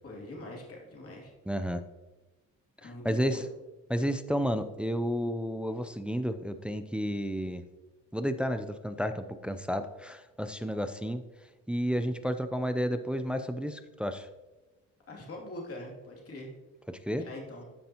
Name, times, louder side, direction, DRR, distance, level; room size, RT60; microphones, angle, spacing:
voice 1, 0.0-1.3 2.8-3.5 15.1-16.5 17.2-17.7, left 1 dB, 50° left, -2 dB, 2.7 m, -43 dB
voice 2, 1.5-1.8 2.8-3.5 3.9-7.6 8.1-11.2 11.7-14.3 16.9-17.2, equal, 5° right, 9 dB, 0.5 m, -31 dB
14.0 x 5.2 x 2.9 m, 1.1 s
cardioid pair, 90°, 30 cm